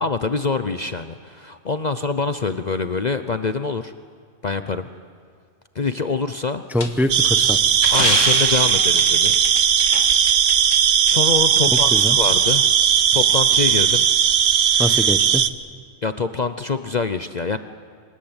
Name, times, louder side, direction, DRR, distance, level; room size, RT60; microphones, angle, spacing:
voice 1, 0.0-3.9 4.4-4.9 5.7-6.6 7.9-9.4 11.0-12.7 13.1-14.0 16.0-17.6, left 4 dB, 40° left, 9 dB, 0.8 m, -25 dB
voice 2, 6.7-7.6 11.7-12.2 14.8-15.4, left 1 dB, ahead, 9 dB, 0.8 m, -23 dB
sound 1, 6.8-10.8 11.1-11.2 11.8-11.9, left 3 dB, 80° left, 2.2 m, -28 dB
sound 2, 7.1-15.5, right 8 dB, 65° right, 1.1 m, -17 dB
26.5 x 21.5 x 8.9 m, 2.2 s
omnidirectional pair, 1.3 m